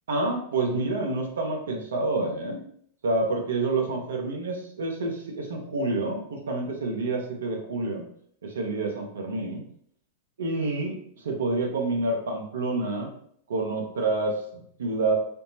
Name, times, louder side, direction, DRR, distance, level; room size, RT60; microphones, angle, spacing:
voice 1, 0.1-2.6 3.0-8.0 8.4-9.6 10.4-11.0 11.2-13.1 13.5-15.1, right 2 dB, 75° right, 1 dB, 0.7 m, -28 dB
3.5 x 2.0 x 2.7 m, 0.63 s
hypercardioid pair, 95°, 0 cm